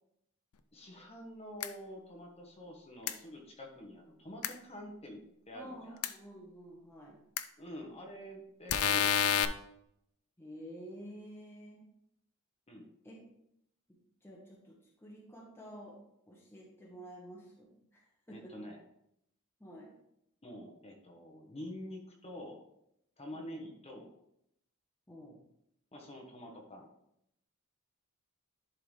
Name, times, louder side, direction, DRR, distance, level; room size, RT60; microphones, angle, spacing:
voice 1, 0.7-5.2 5.5-6.0 7.6-9.5 12.7-12.9 18.3-18.8 20.4-22.6 23.2-24.1 25.9-26.9, left 1 dB, 30° left, 1 dB, 1.2 m, -47 dB
sound 1, 1.6-1.7 3.1-3.2 4.4-4.5 6.0-6.1 7.4-7.5 8.7-9.5, left 9 dB, 75° left, 0.5 m, -28 dB
voice 2, 5.5-7.2 10.4-11.8 13.0-13.2 14.2-16.0 16.3-18.6 19.6-19.9 23.3-23.7 25.1-25.4, equal, 10° left, -3 dB, 1.1 m, -50 dB
11.0 x 3.8 x 3.3 m, 0.77 s
head